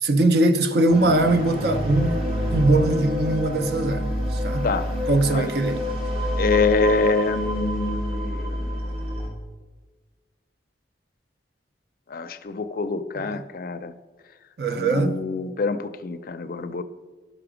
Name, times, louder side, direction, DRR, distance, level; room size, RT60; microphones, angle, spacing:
voice 1, 0.0-2.2 2.5-4.1 4.4-4.7 5.1-5.8 13.2-13.3 14.6-15.2, right 2 dB, 60° right, 0.6 m, -21 dB
sound 1, 0.9-9.3, equal, 35° right, 1.7 m, -28 dB
voice 2, 6.4-8.8 12.1-13.9 14.8-16.8, left 4 dB, 50° left, 0.4 m, -25 dB
11.0 x 5.9 x 4.9 m
head